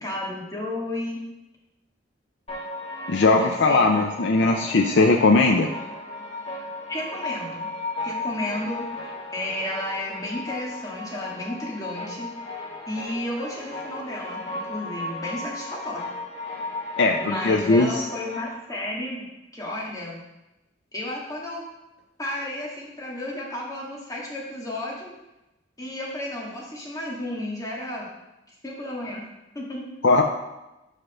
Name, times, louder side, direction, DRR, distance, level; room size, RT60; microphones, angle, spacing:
voice 1, 0.0-1.2 3.3-3.9 4.4-4.5 6.9-7.7 8.0-8.8 9.3-12.3 12.9-16.0 17.2-19.3 19.5-20.3 20.9-21.6 22.2-25.1 25.8-28.1 28.6-29.2 29.6-29.8, left 1 dB, 20° left, -3 dB, 1.8 m, -32 dB
sound 1, 2.5-18.5, left 2 dB, 35° left, 1.7 m, -35 dB
voice 2, 3.1-5.7 17.0-18.1 30.0-30.2, left 3 dB, 70° left, 2 dB, 0.6 m, -19 dB
5.7 x 5.1 x 6.3 m, 0.98 s
head